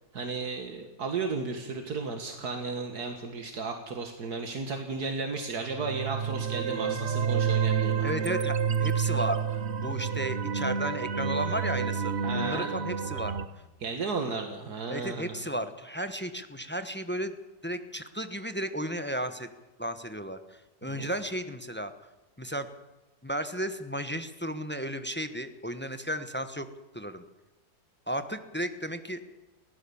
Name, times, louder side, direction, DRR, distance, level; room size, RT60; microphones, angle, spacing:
voice 1, 0.1-8.1 12.2-12.7 13.8-15.4 20.9-21.1, right 4 dB, 75° right, 4 dB, 2.2 m, -34 dB
sound 1, 5.6-13.5, right 6 dB, 45° right, 1.2 m, -29 dB
voice 2, 8.0-9.4 9.8-13.3 14.9-17.3 17.6-19.5 19.8-21.9 22.4-22.7 23.2-26.7 26.9-27.2 28.1-29.2, equal, 10° left, 9 dB, 0.9 m, -34 dB
22.0 x 16.5 x 7.1 m, 1.1 s
omnidirectional pair, 1.7 m